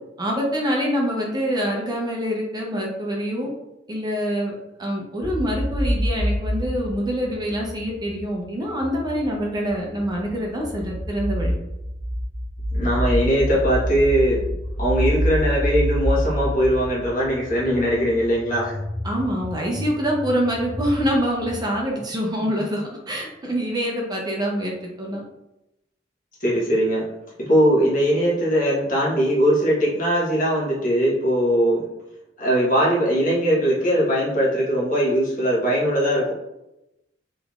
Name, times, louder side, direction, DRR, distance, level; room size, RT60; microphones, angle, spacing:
voice 1, 0.2-3.5 3.9-4.5 4.8-11.5 19.0-24.7 25.0-25.2, equal, 25° right, -1 dB, 0.5 m, -25 dB
sound 1, 5.2-8.3 8.8-21.8, equal, 25° left, 1.0 m, -27 dB
voice 2, 12.7-14.4 14.8-18.7 26.4-27.1 27.4-31.8 32.4-36.3, equal, 50° left, -5 dB, 1.2 m, -20 dB
3.5 x 3.0 x 2.4 m, 0.90 s
head